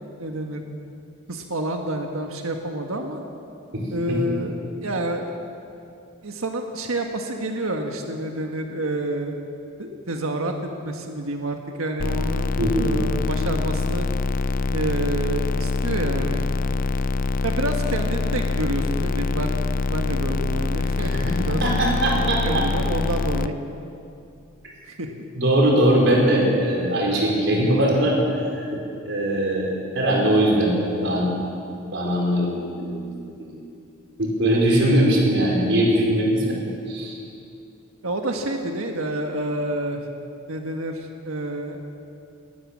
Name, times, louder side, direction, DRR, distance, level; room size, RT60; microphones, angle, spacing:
voice 1, 0.2-0.6 1.3-3.2 3.9-5.4 6.2-9.4 9.8-10.5 10.8-12.5 12.8-14.1 14.7-16.4 17.4-19.6 19.9-21.6 22.4-23.5 24.8-25.1 38.0-40.0 40.5-41.8, right 1 dB, 90° right, 3 dB, 1.5 m, -28 dB
sound 1, 12.0-23.5, left 3 dB, 40° left, 0.4 m, -24 dB
voice 2, 12.6-12.9 21.0-22.6 25.4-28.2 28.6-28.8 29.1-30.7 31.0-31.3 31.9-33.1 34.2-36.4 36.9-37.2, right 1 dB, 60° right, -1 dB, 4.7 m, -21 dB
19.5 x 18.0 x 7.4 m, 2.6 s
head